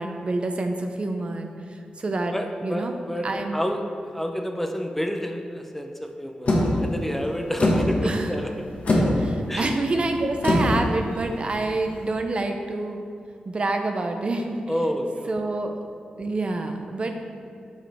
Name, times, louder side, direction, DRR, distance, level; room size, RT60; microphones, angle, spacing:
voice 1, 0.0-2.3 2.6-3.0 3.2-3.6 8.0-8.3 9.2-13.0 13.4-14.6 15.3-15.7 16.2-17.2, right 2 dB, 45° right, 4 dB, 0.6 m, -27 dB
voice 2, 2.3-3.8 4.1-8.5 9.5-9.7 14.7-15.4, equal, 10° left, 4 dB, 0.6 m, -29 dB
sound 1, 6.5-12.1, left 1 dB, 60° left, 1.3 m, -25 dB
8.9 x 5.0 x 3.5 m, 2.5 s
wide cardioid pair, 85°, 3 cm